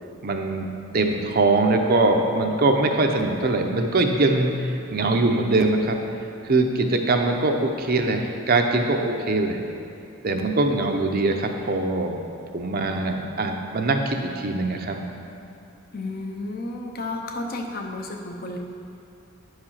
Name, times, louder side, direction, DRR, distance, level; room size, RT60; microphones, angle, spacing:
voice 1, 0.2-0.7 0.9-6.0 6.4-9.6 10.2-12.2 12.5-15.0, right 2 dB, 45° right, 4 dB, 0.7 m, -22 dB
voice 2, 15.9-18.6, left 2 dB, 45° left, 2 dB, 0.8 m, -32 dB
9.6 x 4.9 x 5.7 m, 2.6 s
head